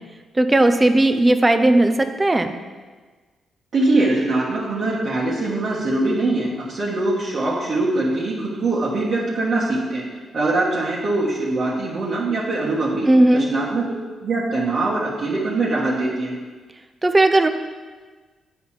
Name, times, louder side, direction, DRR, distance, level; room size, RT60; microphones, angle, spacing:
voice 1, 0.4-2.5 13.1-13.5 17.0-17.5, right 1 dB, 20° right, 8 dB, 0.5 m, -16 dB
voice 2, 3.7-13.8 14.2-16.3, right 2 dB, 55° right, -5 dB, 1.4 m, -22 dB
8.1 x 4.6 x 5.8 m, 1.4 s
cardioid pair, 105°, 0 cm